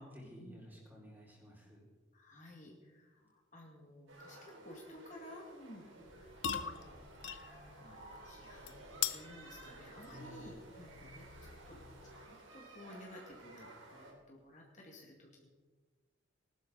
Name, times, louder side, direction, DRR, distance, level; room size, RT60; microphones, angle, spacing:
voice 1, 0.1-1.9 10.0-10.5, equal, 10° right, -4 dB, 4.4 m, -53 dB
voice 2, 2.1-5.9 6.2-6.3 6.6-7.1 7.3-15.5, left 1 dB, 40° left, -1 dB, 2.1 m, -55 dB
sound 1, 4.1-14.1, right 2 dB, 75° right, 3.9 m, -55 dB
sound 2, 6.0-12.4, left 8 dB, 65° left, 0.7 m, -44 dB
19.5 x 12.5 x 4.0 m, 1.3 s
head